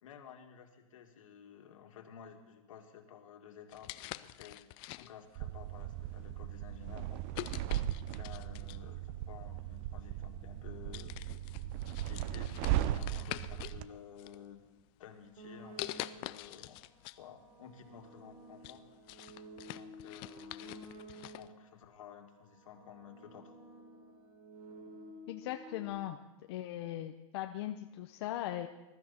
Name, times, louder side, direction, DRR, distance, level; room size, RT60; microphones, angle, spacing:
voice 1, 0.0-4.6 5.0-7.5 8.1-11.7 12.1-12.5 12.9-14.6 15.0-16.8 17.2-18.8 19.7-20.8 21.1-23.6, left 8 dB, 70° left, 4 dB, 2.3 m, -53 dB
sound 1, 3.7-5.4 6.1-6.3 7.3-8.9 10.0-10.1 10.5-10.7 10.9-13.8 14.2-14.9 15.8-17.2 17.6-17.7 18.2-21.5, left 18 dB, 30° left, 0.4 m, -46 dB
sound 2, 5.4-13.9, right 13 dB, 30° right, 0.5 m, -37 dB
sound 3, 15.4-16.4 17.2-21.7 22.5-25.9, equal, 75° right, 4.1 m, -52 dB
voice 2, 25.3-26.2 26.5-28.7, left 13 dB, 50° left, 5 dB, 0.8 m, -39 dB
21.0 x 13.0 x 4.4 m, 1.1 s
hypercardioid pair, 150°, 18 cm